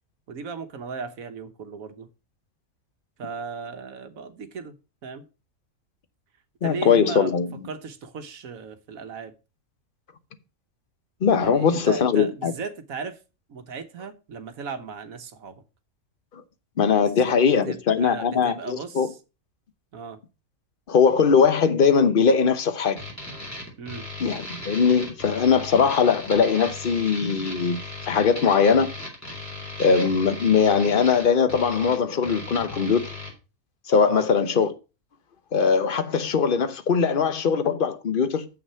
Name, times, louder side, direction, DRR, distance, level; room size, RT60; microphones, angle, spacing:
voice 1, 0.3-2.1 3.2-5.3 6.6-7.4 7.7-9.3 11.4-13.2 13.5-15.6 17.3-19.2 19.9-20.2 23.8-24.1 34.1-34.3, right 5 dB, 75° right, 1.4 m, -36 dB
voice 2, 6.6-7.5 11.2-12.5 16.3-16.4 16.8-19.1 20.9-23.0 24.2-28.9 29.8-33.1 33.9-34.7 35.5-38.5, left 6 dB, 45° left, 1.0 m, -21 dB
sound 1, 23.0-33.3, left 1 dB, 10° left, 3.3 m, -37 dB
7.5 x 6.1 x 5.5 m
omnidirectional pair, 1.5 m